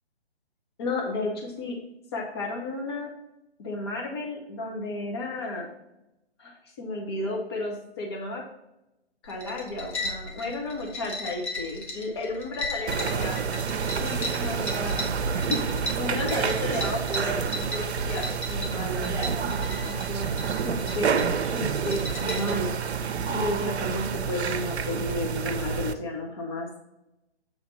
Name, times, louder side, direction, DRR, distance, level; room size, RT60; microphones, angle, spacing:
voice 1, 0.8-1.8 2.1-3.1 3.6-5.7 6.4-8.4 9.2-13.4 14.0-22.7 23.3-26.7, left 2 dB, 25° left, 0 dB, 0.8 m, -33 dB
sound 1, 9.2-22.6, left 1 dB, 90° left, 1.9 m, -37 dB
sound 2, 12.9-25.9, right 6 dB, 75° right, 0.6 m, -28 dB
7.5 x 3.3 x 4.0 m, 0.92 s
hypercardioid pair, 160°, 33 cm